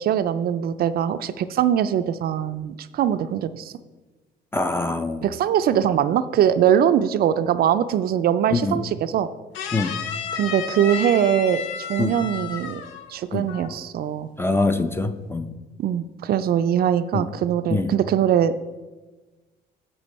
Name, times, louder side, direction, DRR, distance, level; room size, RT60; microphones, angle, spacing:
voice 1, 0.0-3.7 5.2-9.3 10.3-12.8 13.1-14.3 15.8-18.5, right 9 dB, 55° right, 0.4 m, -22 dB
voice 2, 4.5-5.3 8.5-8.8 9.7-9.9 12.0-12.1 13.3-13.5 14.4-15.5 17.1-17.3 17.7-17.9, left 3 dB, 10° left, 0.5 m, -24 dB
sound 1, 9.5-13.2 13.5-13.8, left 7 dB, 90° left, 0.6 m, -32 dB
7.0 x 6.9 x 4.1 m
cardioid pair, 95°, 19 cm